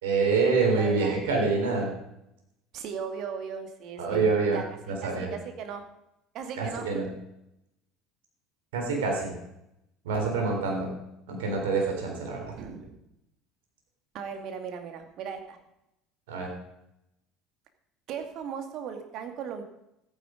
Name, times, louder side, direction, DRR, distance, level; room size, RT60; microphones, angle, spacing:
voice 1, 0.0-1.9 4.0-4.6 4.9-5.3 6.6-7.1 8.7-9.4 10.1-10.9 11.3-12.5 16.3-16.5, right 4 dB, 75° right, 0 dB, 3.7 m, -26 dB
voice 2, 0.8-1.2 2.7-5.8 6.3-7.0 12.5-13.0 14.1-15.6 18.1-19.6, right 6 dB, 55° right, 6 dB, 2.2 m, -37 dB
14.0 x 9.9 x 5.1 m, 0.84 s
hypercardioid pair, 70°, 0 cm